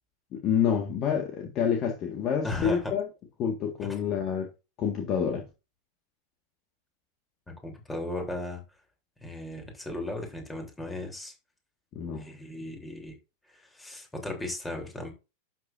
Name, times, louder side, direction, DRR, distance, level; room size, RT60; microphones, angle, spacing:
voice 1, 0.3-3.0 3.4-4.5 4.8-5.4 12.0-12.3, left 7 dB, 35° left, 1.7 m, -28 dB
voice 2, 2.4-2.8 7.5-8.6 9.2-11.3 12.2-13.2 13.7-15.1, left 2 dB, 10° left, 3.5 m, -36 dB
11.5 x 7.6 x 2.6 m
figure-of-eight pair, 90°, 0 cm